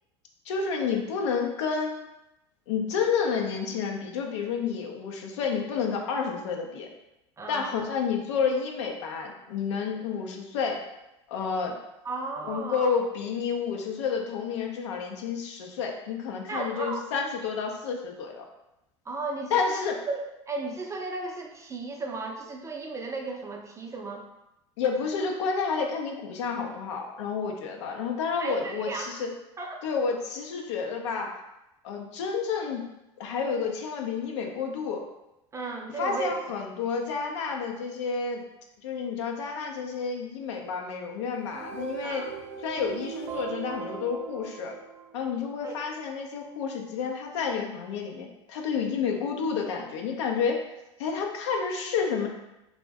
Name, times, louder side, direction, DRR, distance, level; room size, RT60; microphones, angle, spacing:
voice 1, 0.5-2.0 2.7-6.9 7.5-10.8 11.3-11.8 12.5-18.4 19.5-20.0 24.8-29.3 29.8-31.4 31.8-32.8 33.2-35.0 36.0-38.5 38.8-42.2 42.6-44.7 45.1-50.6 51.0-52.3, left 5 dB, 75° left, 2 dB, 0.5 m, -30 dB
voice 2, 7.4-7.8 12.0-13.0 16.5-17.1 19.1-24.2 28.4-29.2 29.6-29.8 35.5-36.3 42.0-42.3 45.6-45.8, right 3 dB, 20° right, 1 dB, 0.5 m, -35 dB
sound 1, 41.3-45.6, right 7 dB, 55° right, 0.7 m, -39 dB
2.5 x 2.1 x 3.4 m, 0.91 s
hypercardioid pair, 80°, 15 cm